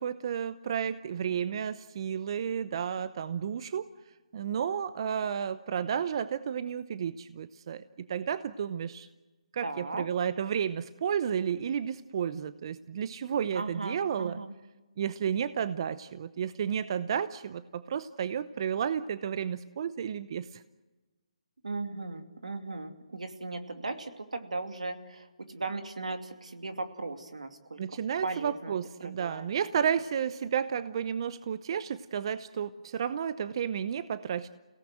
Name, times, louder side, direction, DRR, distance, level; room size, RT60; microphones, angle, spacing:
voice 1, 0.0-3.9 4.3-9.1 9.5-14.4 15.0-20.6 27.8-34.5, right 8 dB, 45° right, 13 dB, 0.8 m, -32 dB
voice 2, 9.6-10.1 13.5-14.5 21.6-27.8 28.2-28.7 29.0-29.5, right 3 dB, 85° right, 6 dB, 2.6 m, -37 dB
30.0 x 17.5 x 7.8 m, 1.2 s
hypercardioid pair, 150°, 4 cm